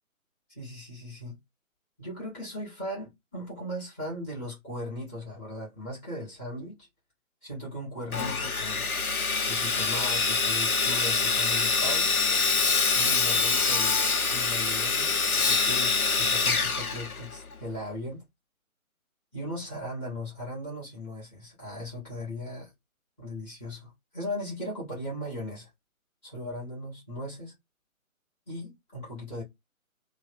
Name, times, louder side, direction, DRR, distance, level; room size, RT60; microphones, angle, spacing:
voice 1, 0.5-1.3 2.0-6.8 7.4-8.9 9.4-12.1 12.9-14.0 14.3-18.2 19.3-22.7 23.2-25.7 26.2-27.5 28.5-29.4, left 1 dB, 10° left, 1.2 m, -38 dB
Sawing, 8.1-17.6, left 4 dB, 85° left, 0.8 m, -25 dB
3.1 x 2.2 x 3.4 m
figure-of-eight pair, 145°, 42 cm